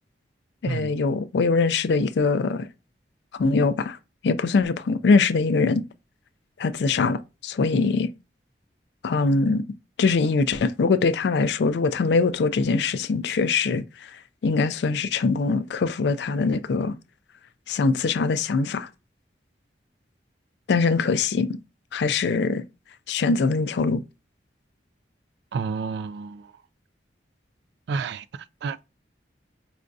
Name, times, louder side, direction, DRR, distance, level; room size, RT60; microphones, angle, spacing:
voice 1, 0.6-2.7 3.4-4.0 4.2-5.8 6.6-8.1 9.0-9.6 10.0-14.1 14.4-16.9 17.7-18.9 20.7-21.5 21.9-22.6 23.1-24.0, left 4 dB, 70° left, 0.4 m, -22 dB
voice 2, 25.5-26.6 27.9-28.8, right 5 dB, 70° right, 0.3 m, -30 dB
4.9 x 2.5 x 2.3 m
head